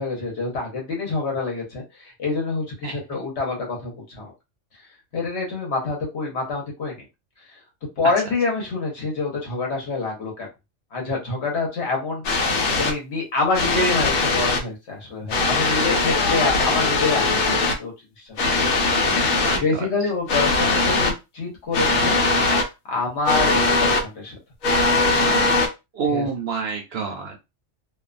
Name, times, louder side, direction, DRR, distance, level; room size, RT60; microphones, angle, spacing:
voice 1, 0.0-4.3 5.1-7.0 8.0-10.5 10.9-12.2 12.8-18.6 19.6-22.2 22.9-24.4 26.1-26.3, left 3 dB, 60° left, 1.2 m, -26 dB
sound 1, 12.2-12.9 13.5-14.6 15.3-17.7 18.4-19.6 20.3-21.1 21.7-22.6 23.2-24.0 24.6-25.7, left 3 dB, 80° left, 1.1 m, -20 dB
voice 2, 19.4-19.9 25.9-27.4, right 5 dB, 65° right, 0.7 m, -27 dB
2.5 x 2.2 x 2.5 m
omnidirectional pair, 1.3 m